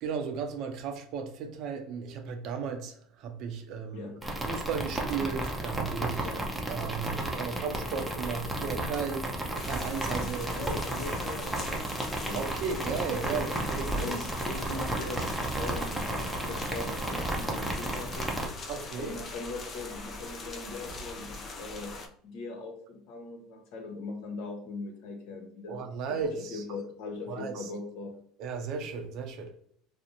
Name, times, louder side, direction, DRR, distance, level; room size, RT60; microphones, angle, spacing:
voice 1, 0.0-4.1 4.5-6.3 6.7-9.3 9.6-10.5 12.3-14.1 18.7-19.2 25.7-26.6 27.3-27.7 28.4-29.5, right 6 dB, 60° right, 0.5 m, -35 dB
sound 1, 4.2-18.5, right 1 dB, 10° right, 0.6 m, -33 dB
sound 2, 9.6-22.1, left 2 dB, 40° left, 0.5 m, -41 dB
voice 2, 10.2-12.4 14.0-18.3 19.0-22.0 22.2-25.8 26.1-28.2, left 3 dB, 65° left, 0.8 m, -40 dB
2.5 x 2.0 x 2.8 m
supercardioid pair, 95°, 0 cm